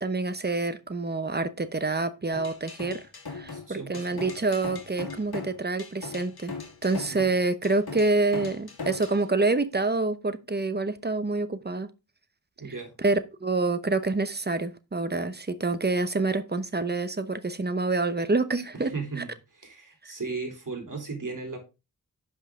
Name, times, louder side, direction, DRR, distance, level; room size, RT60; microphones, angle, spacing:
voice 1, 0.0-3.0 3.3-6.5 6.8-11.9 13.0-18.9, right 3 dB, 25° right, 0.8 m, -27 dB
sound 1, 2.3-9.2, left 4 dB, 75° left, 1.9 m, -39 dB
voice 2, 3.5-4.2 7.0-7.2 12.6-12.9 18.7-21.6, right 4 dB, 55° right, 3.2 m, -36 dB
11.0 x 5.5 x 3.6 m
wide cardioid pair, 75°, 38 cm